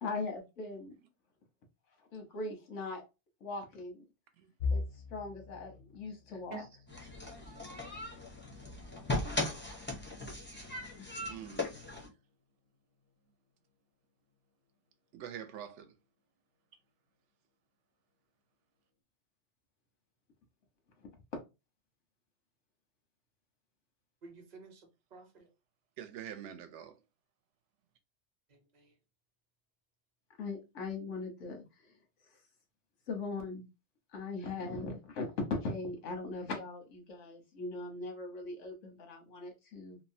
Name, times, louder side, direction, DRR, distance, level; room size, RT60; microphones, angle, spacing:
voice 1, 0.0-0.9 2.1-3.0 3.4-4.0 4.7-4.8 5.1-6.6 10.9-11.3 30.4-31.7 33.1-33.7 34.1-40.0, left 3 dB, 90° left, 1.2 m, -39 dB
sound 1, 4.6-16.4 16.9-17.1 17.5-17.7 18.5-19.0, left 4 dB, 60° left, 0.6 m, -45 dB
sound 2, 6.9-12.1, left 2 dB, 20° left, 0.3 m, -38 dB
voice 2, 11.3-11.7 15.1-16.0 26.0-27.0, right 9 dB, 75° right, 0.9 m, -45 dB
voice 3, 24.2-25.5 28.5-29.0, right 4 dB, 45° right, 0.7 m, -50 dB
2.9 x 2.0 x 2.6 m
omnidirectional pair, 1.2 m